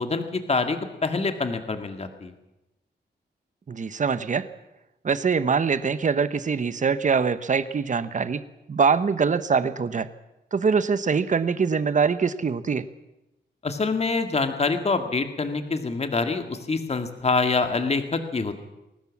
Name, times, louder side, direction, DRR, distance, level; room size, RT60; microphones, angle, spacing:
voice 1, 0.0-2.3 13.6-18.5, left 4 dB, 35° left, 7 dB, 2.0 m, -26 dB
voice 2, 3.7-4.5 5.0-8.4 8.7-10.1 10.5-12.8, right 5 dB, 40° right, 13 dB, 1.1 m, -23 dB
21.0 x 19.0 x 7.3 m, 0.95 s
wide cardioid pair, 130°, 19 cm